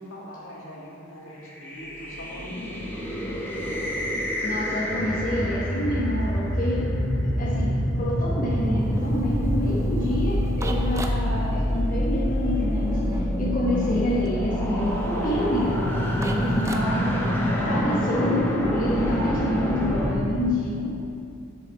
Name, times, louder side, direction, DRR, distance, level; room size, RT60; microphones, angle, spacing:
voice 1, 0.0-3.9 16.7-18.0, left 1 dB, 70° left, -5 dB, 2.0 m, -39 dB
sound 1, 1.5-20.1, equal, 10° left, 1.0 m, -26 dB
voice 2, 4.4-17.3 17.6-20.9, left 1 dB, 40° left, -7 dB, 1.2 m, -28 dB
sound 2, 8.5-17.3, right 2 dB, 15° right, 0.5 m, -41 dB
8.4 x 6.9 x 4.7 m, 2.4 s
head